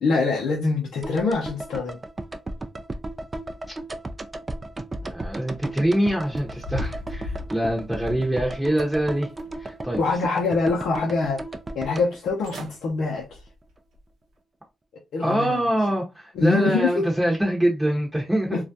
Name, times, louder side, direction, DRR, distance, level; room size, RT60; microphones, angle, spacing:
voice 1, 0.0-2.0 10.0-11.4 11.7-13.4 15.1-15.8 16.3-17.0 18.5-18.6, left 3 dB, 80° left, 0.5 m, -24 dB
sound 1, 1.0-13.2 13.5-13.6, right 2 dB, 30° right, 0.4 m, -35 dB
voice 2, 5.0-9.3 9.6-10.0 15.2-18.6, right 1 dB, 10° right, 0.8 m, -24 dB
sound 2, 6.3-8.3 8.8-9.6 10.0-10.9 11.3-11.4 12.1-12.2 12.4-12.8 13.2-13.5 14.0-14.1, left 1 dB, 85° right, 0.6 m, -36 dB
2.3 x 2.1 x 2.6 m
supercardioid pair, 55°, 0 cm